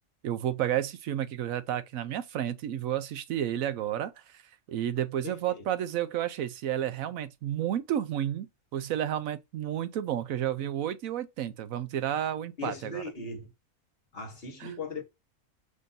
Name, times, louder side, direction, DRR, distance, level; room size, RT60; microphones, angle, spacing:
voice 1, 0.2-4.4 4.7-8.5 8.7-13.0 14.6-14.7, right 11 dB, 75° right, 1.0 m, -31 dB
voice 2, 5.2-5.6 12.6-13.5 14.1-15.0, left 2 dB, 45° left, 1.3 m, -38 dB
5.2 x 2.6 x 3.9 m
omnidirectional pair, 1.5 m